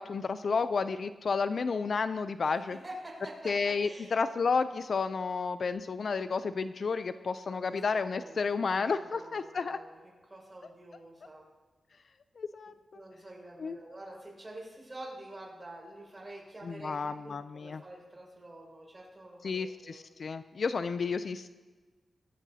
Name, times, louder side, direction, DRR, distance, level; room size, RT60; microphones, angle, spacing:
voice 1, 0.0-2.8 3.5-9.8 12.4-12.7 13.6-13.8 16.6-17.8 19.4-21.5, left 5 dB, 50° left, 11 dB, 0.4 m, -31 dB
voice 2, 2.7-4.1 7.5-10.0 10.3-11.4 12.9-20.0, right 1 dB, 20° right, -3 dB, 5.4 m, -48 dB
22.0 x 14.0 x 2.8 m, 1.3 s
wide cardioid pair, 140°, 0 cm